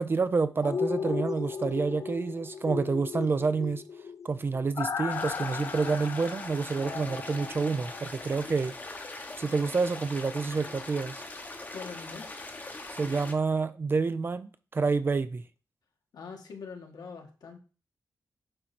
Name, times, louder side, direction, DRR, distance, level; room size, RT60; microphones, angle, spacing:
voice 1, 0.0-3.8 4.2-8.7 9.4-11.2 12.9-15.4, right 4 dB, 30° right, 0.4 m, -28 dB
sound 1, 0.6-8.5 8.9-9.0, left 6 dB, 45° left, 0.4 m, -36 dB
sound 2, 5.1-13.3, left 2 dB, 25° left, 0.9 m, -41 dB
voice 2, 11.7-12.3 16.1-17.6, left 5 dB, 75° left, 1.4 m, -43 dB
8.8 x 3.1 x 4.2 m
wide cardioid pair, 145°, 7 cm